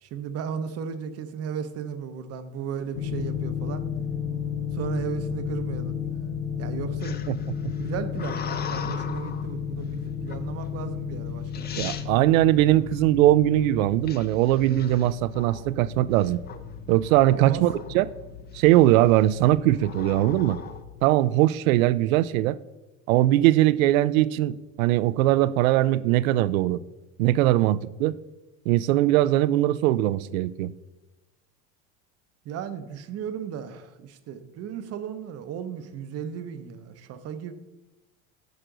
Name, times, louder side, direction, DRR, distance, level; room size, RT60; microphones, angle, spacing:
voice 1, 0.0-3.8 4.7-6.3 6.6-7.2 7.8-12.1 17.4-17.9 32.4-37.5, right 7 dB, 40° right, 0.7 m, -35 dB
sound 1, 2.9-21.1, left 8 dB, 80° left, 1.2 m, -34 dB
sound 2, 7.0-9.5 10.3-10.7 11.3-11.4 11.5-12.1 14.1-15.7 16.2-16.6 16.9-18.1 18.6-19.0 19.8-20.8, left 7 dB, 25° left, 0.6 m, -39 dB
voice 2, 11.8-16.4 16.9-18.1 18.5-20.6 21.0-22.6 23.1-26.8 27.2-28.2 28.7-30.7, right 15 dB, 85° right, 0.5 m, -21 dB
9.5 x 6.2 x 3.8 m
supercardioid pair, 120°, 40 cm